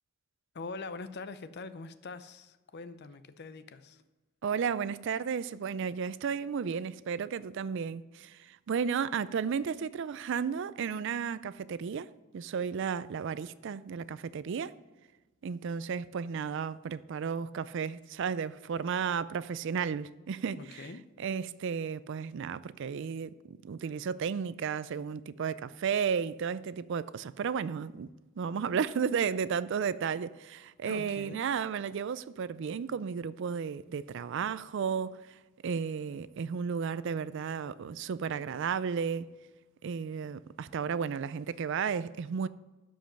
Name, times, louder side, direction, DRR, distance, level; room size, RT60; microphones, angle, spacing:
voice 1, 0.5-4.0 20.5-21.0 30.8-31.4, left 3 dB, 55° left, 0.6 m, -43 dB
voice 2, 4.4-12.1 12.3-14.8 15.4-20.9 21.2-28.1 28.4-39.3 39.8-42.5, right 6 dB, 60° right, 0.4 m, -33 dB
11.5 x 5.2 x 5.9 m
head